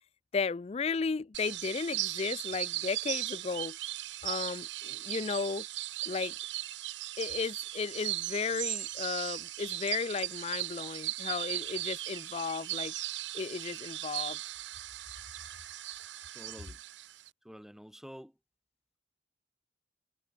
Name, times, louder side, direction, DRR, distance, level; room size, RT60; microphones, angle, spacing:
voice 1, 0.3-3.8 4.2-5.7 6.1-6.3 7.2-12.9 13.3-14.4, left 5 dB, 35° left, 0.3 m, -34 dB
sound 1, 1.3-17.3, right 16 dB, 80° right, 0.8 m, -38 dB
voice 2, 16.3-16.8 17.4-18.3, equal, ahead, 0.8 m, -48 dB
head